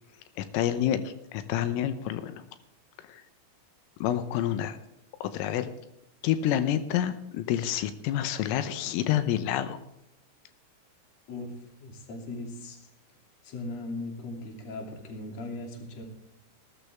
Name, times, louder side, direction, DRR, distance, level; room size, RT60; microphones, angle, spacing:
voice 1, 0.4-2.4 3.0-3.2 4.0-4.8 5.2-5.7 6.2-9.8, left 11 dB, 85° left, 11 dB, 3.5 m, -28 dB
voice 2, 11.8-12.9 13.4-16.0, left 2 dB, 40° left, 3 dB, 3.1 m, -38 dB
18.5 x 13.5 x 3.5 m, 0.85 s
omnidirectional pair, 5.8 m